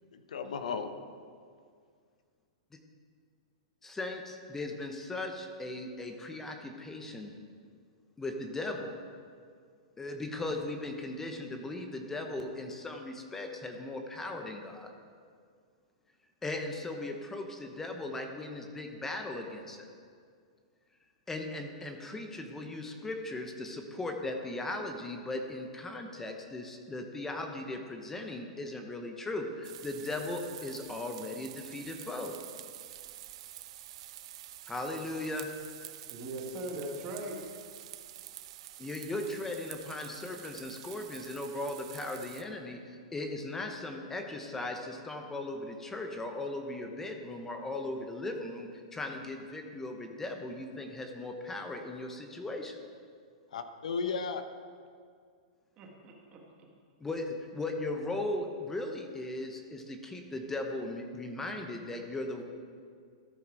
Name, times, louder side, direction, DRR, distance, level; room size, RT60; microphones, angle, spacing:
voice 1, 0.1-0.9 53.5-54.4, left 5 dB, 85° left, 9 dB, 0.8 m, -34 dB
voice 2, 3.8-7.3 8.2-9.0 10.0-14.9 16.4-19.9 21.3-32.3 34.7-35.5 38.8-52.8 57.0-62.4, left 2 dB, 10° left, 4 dB, 0.7 m, -38 dB
sound 1, 29.6-42.4, right 13 dB, 55° right, 0.5 m, -48 dB
voice 3, 36.1-37.4 55.8-56.7, right 1 dB, 30° right, 0 dB, 1.5 m, -40 dB
13.5 x 4.7 x 4.7 m, 2.1 s
hypercardioid pair, 150°, 4 cm